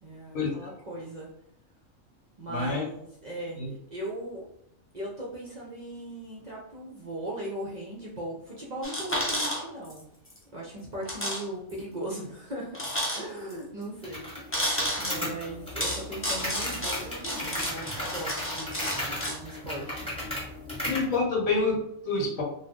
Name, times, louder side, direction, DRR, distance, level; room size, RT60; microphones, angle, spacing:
voice 1, 0.0-1.3 2.4-4.4 4.9-10.0 10.5-12.9 13.1-14.7 15.0-20.1, right 1 dB, 50° right, -4 dB, 0.5 m, -38 dB
voice 2, 2.5-2.8 3.6-3.7 20.8-22.4, left 3 dB, 75° left, 1 dB, 1.1 m, -27 dB
sound 1, 8.8-10.0 10.3-10.4 11.0-11.4 11.7-11.8 12.7-13.5 14.5-15.2 15.8-19.4, equal, 20° left, 0.3 m, -31 dB
sound 2, 14.0-21.1, left 1 dB, 5° left, 0.9 m, -36 dB
2.5 x 2.3 x 3.5 m, 0.76 s
omnidirectional pair, 1.4 m